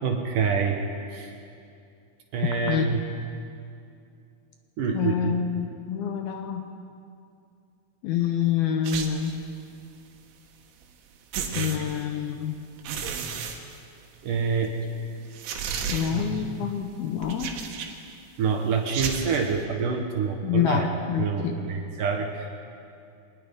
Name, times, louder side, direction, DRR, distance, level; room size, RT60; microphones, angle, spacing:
voice 1, 0.0-0.8 1.1-1.3 2.3-3.0 4.8-5.3 14.2-14.8 16.0-16.7 18.4-20.9 21.2-22.6, right 5 dB, 65° right, 2 dB, 2.3 m, -27 dB
voice 2, 2.7-3.0 4.9-6.7 8.0-9.4 11.6-12.6 15.9-17.6 20.4-21.6, left 8 dB, 75° left, 5 dB, 2.5 m, -27 dB
sound 1, 8.8-9.5 10.8-10.9 11.3-12.3 12.8-14.3 14.7-14.8 15.3-16.5 17.2-18.1 18.8-19.5, right 6 dB, 80° right, 3.7 m, -33 dB
24.5 x 19.5 x 5.3 m, 2.5 s
omnidirectional pair, 5.1 m